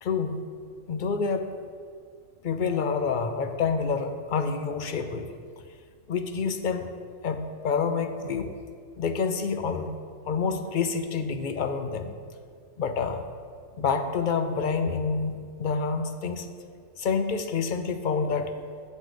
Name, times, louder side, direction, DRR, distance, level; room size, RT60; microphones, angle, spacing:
voice 1, 0.0-0.4 0.9-1.5 2.4-5.3 6.1-6.9 7.2-8.6 9.0-10.0 10.3-12.1 12.8-13.3 13.8-16.5 17.0-18.5, left 5 dB, 55° left, 8 dB, 0.6 m, -28 dB
7.5 x 7.4 x 5.0 m, 2.1 s
omnidirectional pair, 1.3 m